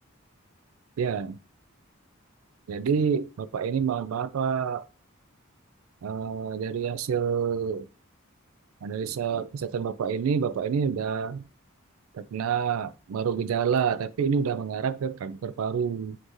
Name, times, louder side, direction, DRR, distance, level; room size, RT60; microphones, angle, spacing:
voice 1, 1.0-1.4 2.7-4.9 6.0-7.9 8.8-11.4 12.1-16.2, right 6 dB, 80° right, 0.3 m, -28 dB
5.8 x 2.6 x 3.0 m
head